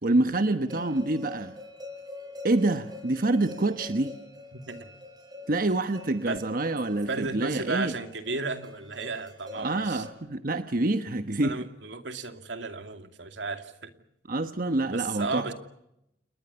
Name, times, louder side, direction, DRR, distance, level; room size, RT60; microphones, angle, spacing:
voice 1, 0.0-1.5 2.4-4.2 5.5-7.9 9.5-11.6 14.3-15.5, right 2 dB, 50° right, 9 dB, 1.2 m, -27 dB
sound 1, 0.7-10.1, left 3 dB, 20° right, 5.9 m, -45 dB
voice 2, 4.5-4.9 6.3-6.4 7.1-10.1 11.4-13.9 14.9-15.5, right 3 dB, 85° right, 7 dB, 2.6 m, -34 dB
29.5 x 21.0 x 7.0 m, 0.81 s
head